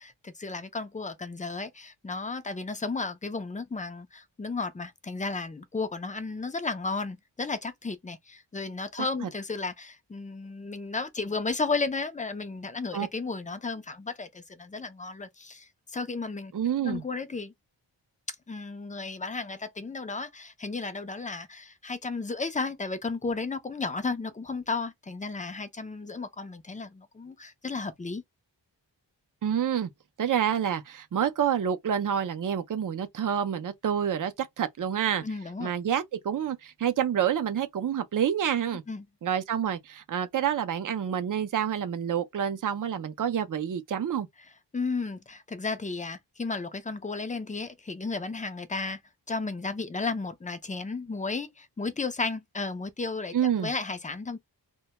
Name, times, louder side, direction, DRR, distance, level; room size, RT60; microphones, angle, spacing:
voice 1, 0.0-16.5 16.8-17.5 18.3-28.2 35.2-35.7 38.9-39.1 44.7-49.0 49.3-54.4, left 3 dB, 20° left, 0.4 m, -34 dB
voice 2, 16.5-17.0 29.4-29.9 30.2-35.2 35.6-38.8 39.2-44.3 53.3-53.7, right 9 dB, 45° right, 0.4 m, -28 dB
2.2 x 2.1 x 2.8 m
wide cardioid pair, 70°, 45 cm